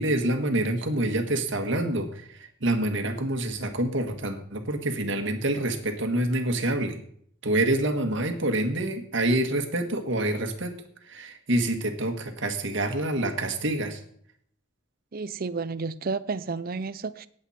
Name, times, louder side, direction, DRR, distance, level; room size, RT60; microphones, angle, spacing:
voice 1, 0.0-7.0 7.4-10.7 11.1-14.0, right 1 dB, 65° right, 1.7 m, -27 dB
voice 2, 15.1-17.3, right 4 dB, 45° right, 0.6 m, -31 dB
18.0 x 7.9 x 4.3 m
head